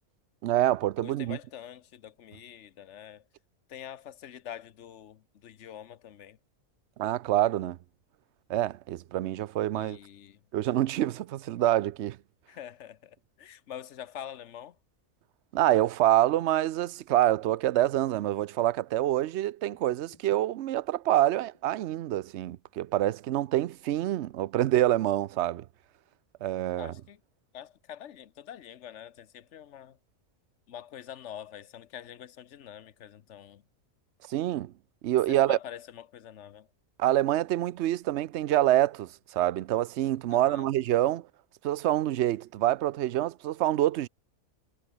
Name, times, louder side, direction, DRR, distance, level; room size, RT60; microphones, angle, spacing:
voice 1, 0.4-1.4 7.0-7.8 8.5-10.0 10.5-12.2 15.5-25.6 26.4-26.9 34.3-34.7 35.0-35.6 37.0-41.2 41.6-44.1, right 13 dB, 65° right, 0.7 m, -26 dB
voice 2, 1.0-3.2 3.7-6.4 9.7-10.4 12.5-14.8 26.8-27.2 27.5-30.0 30.7-33.6 35.3-36.7 40.3-40.7, left 10 dB, 55° left, 1.1 m, -45 dB
sound 1, 19.7-20.4 21.5-21.8 23.3-23.6, left 1 dB, 15° left, 3.3 m, -63 dB
omnidirectional pair, 1.5 m